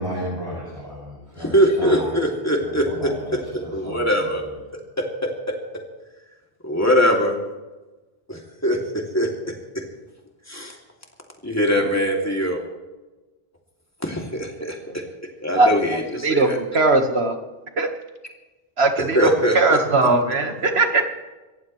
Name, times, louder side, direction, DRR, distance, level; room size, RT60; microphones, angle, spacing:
voice 1, 0.0-2.0 2.9-4.0, equal, 35° right, -8 dB, 6.7 m, -33 dB
voice 2, 1.4-3.1 3.7-4.4 6.6-7.4 8.3-8.8 9.1-9.3 10.5-10.8 11.4-12.7 14.0-14.8 15.4-16.6 19.0-19.8, equal, 15° left, 0 dB, 2.7 m, -21 dB
voice 3, 15.6-17.4 17.8-17.9 18.8-19.3 19.5-21.1, right 3 dB, 80° right, 5 dB, 1.8 m, -19 dB
27.0 x 14.5 x 3.2 m, 1.2 s
omnidirectional pair, 1.1 m